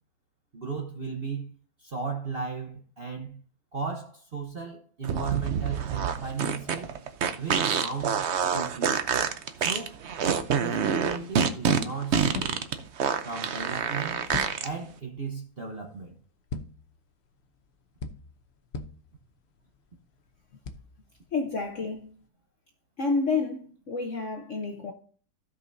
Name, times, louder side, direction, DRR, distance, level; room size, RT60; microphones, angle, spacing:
voice 1, 0.5-1.5 1.8-3.3 3.7-6.9 7.4-8.2 8.5-9.0 9.6-10.0 10.5-12.6 13.2-14.3 14.6-16.1, right 5 dB, 40° right, 1.0 m, -35 dB
sound 1, 5.0-14.7, right 7 dB, 85° right, 0.6 m, -27 dB
sound 2, 12.2-22.3, left 4 dB, 85° left, 0.5 m, -43 dB
voice 2, 21.3-22.1 23.0-24.9, left 4 dB, 50° left, 0.9 m, -29 dB
15.5 x 5.5 x 2.6 m
omnidirectional pair, 2.1 m